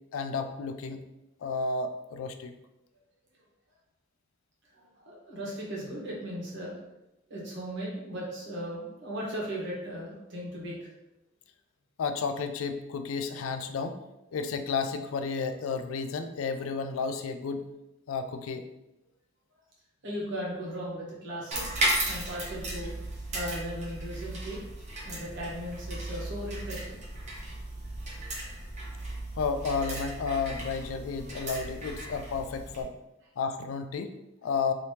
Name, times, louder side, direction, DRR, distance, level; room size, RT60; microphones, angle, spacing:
voice 1, 0.1-1.0 1.4-2.5 12.0-14.0 14.3-17.6 18.1-18.7 29.4-33.0 33.4-34.7, left 5 dB, 85° left, 8 dB, 0.4 m, -32 dB
voice 2, 4.8-6.8 7.3-10.9 20.0-21.6 22.0-22.9 23.3-24.6 25.0-27.0 28.2-28.5, equal, 65° right, -4 dB, 1.2 m, -37 dB
sound 1, 21.5-32.8, right 1 dB, 35° right, 0.9 m, -35 dB
3.3 x 2.8 x 2.8 m, 0.92 s
head